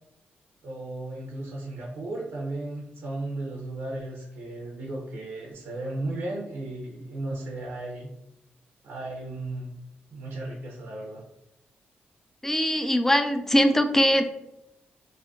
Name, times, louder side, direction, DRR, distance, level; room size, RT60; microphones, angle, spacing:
voice 1, 0.6-8.1 8.8-9.7 10.1-11.2, right 2 dB, 85° right, -2 dB, 0.5 m, -35 dB
voice 2, 12.4-14.4, equal, 10° left, 8 dB, 0.3 m, -22 dB
2.4 x 2.1 x 3.5 m, 0.88 s
cardioid pair, 75°, 4 cm